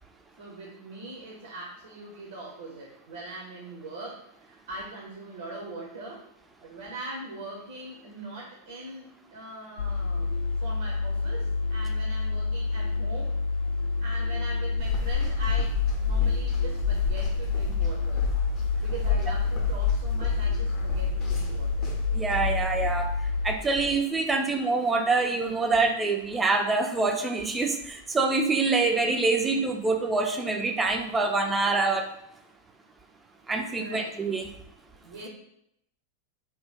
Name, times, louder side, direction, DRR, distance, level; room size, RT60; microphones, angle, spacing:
voice 1, 0.4-6.3 6.6-13.3 14.0-18.2 18.8-21.9 33.8-34.2 35.0-35.3, right 2 dB, 65° right, -2 dB, 0.7 m, -41 dB
sound 1, 9.8-23.6, left 3 dB, 75° left, 0.3 m, -29 dB
sound 2, 14.8-24.0, left 7 dB, 35° left, 0.6 m, -30 dB
voice 2, 22.1-23.1 23.4-32.1 33.5-34.5, right 3 dB, 15° right, 4 dB, 0.4 m, -25 dB
2.9 x 2.2 x 3.4 m, 0.76 s
figure-of-eight pair, 90°, 0 cm